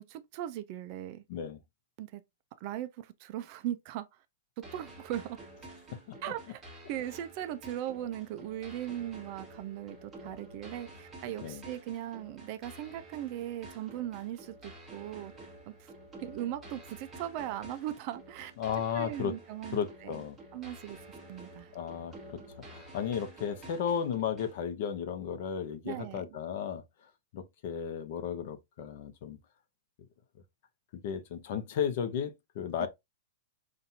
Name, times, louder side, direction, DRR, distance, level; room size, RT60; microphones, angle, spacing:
voice 1, 0.0-1.2 2.0-2.2 2.6-4.1 4.6-5.4 6.2-6.6 6.9-15.3 15.7-15.9 16.2-18.5 18.9-20.2 20.5-21.0 21.3-21.7 25.8-26.4 32.8-32.9, right 12 dB, 35° right, 0.4 m, -39 dB
voice 2, 1.3-1.6 5.9-6.0 11.4-11.6 18.6-19.3 19.7-20.4 21.7-22.4 22.7-26.8 27.3-29.4 31.0-32.9, left 8 dB, 45° left, 0.7 m, -34 dB
sound 1, 4.6-24.6, right 1 dB, 10° right, 1.1 m, -50 dB
5.7 x 2.5 x 2.7 m
supercardioid pair, 170°, 0 cm